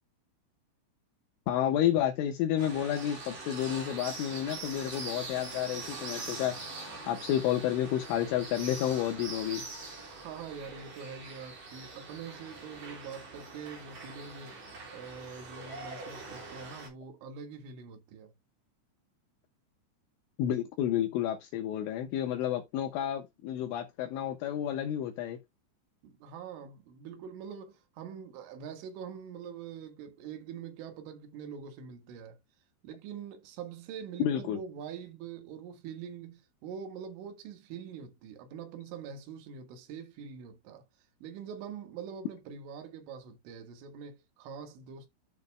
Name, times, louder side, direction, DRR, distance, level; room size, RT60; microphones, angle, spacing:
voice 1, 1.5-9.6 20.4-25.4 34.2-34.6, left 11 dB, 75° left, 3.5 m, -30 dB
sound 1, 2.6-16.9, right 3 dB, 40° right, 5.4 m, -43 dB
voice 2, 10.0-14.6 14.9-18.3 26.0-32.4 32.8-40.9 41.2-45.1, right 7 dB, 75° right, 4.0 m, -44 dB
11.0 x 7.6 x 2.2 m
omnidirectional pair, 5.9 m